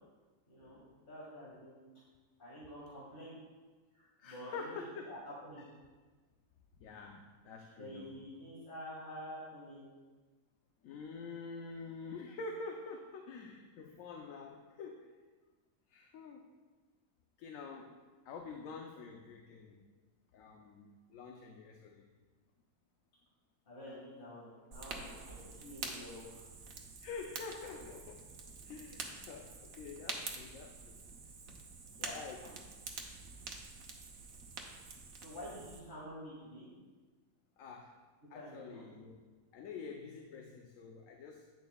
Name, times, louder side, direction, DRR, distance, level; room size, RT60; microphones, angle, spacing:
voice 1, 0.5-1.8 2.4-3.4 3.9-4.8 5.0-5.6 7.8-9.9 23.7-26.4 32.0-32.2 35.2-36.7 38.3-38.8, equal, 40° left, -6 dB, 2.0 m, -48 dB
voice 2, 4.2-5.1 5.6-5.7 6.8-8.2 10.8-15.2 15.9-16.4 17.4-17.9 18.3-19.8 20.3-22.1 27.0-28.3 28.6-31.0 32.1-32.4 37.6-37.9 38.3-39.2 39.5-41.5, left 4 dB, 75° left, 2 dB, 1.1 m, -47 dB
Fire, 24.7-35.8, right 4 dB, 80° right, 1.3 m, -47 dB
10.5 x 8.9 x 2.3 m, 1.3 s
omnidirectional pair, 1.4 m